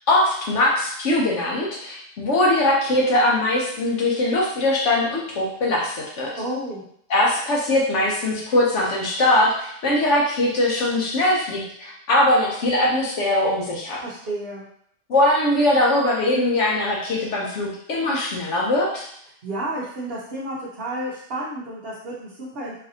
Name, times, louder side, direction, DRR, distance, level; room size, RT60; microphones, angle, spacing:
voice 1, 0.1-6.3 7.1-14.0 15.1-19.0, left 1 dB, 55° left, -2 dB, 0.9 m, -21 dB
voice 2, 6.4-6.8 14.0-14.6 19.4-22.7, right 1 dB, 50° right, -8 dB, 0.8 m, -31 dB
3.9 x 2.6 x 2.7 m, 0.67 s
omnidirectional pair, 1.7 m